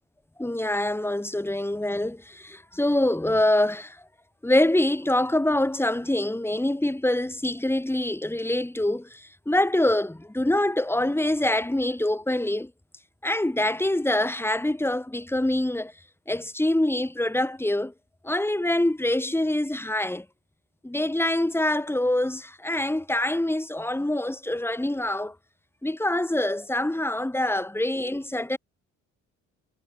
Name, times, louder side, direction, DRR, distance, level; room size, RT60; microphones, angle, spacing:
voice 1, 0.4-4.0 4.4-12.7 13.2-15.9 16.3-17.9 18.2-20.2 20.8-25.3 25.8-28.6, left 1 dB, 10° left, 5.9 m, -25 dB
cardioid pair, 90°, 30 cm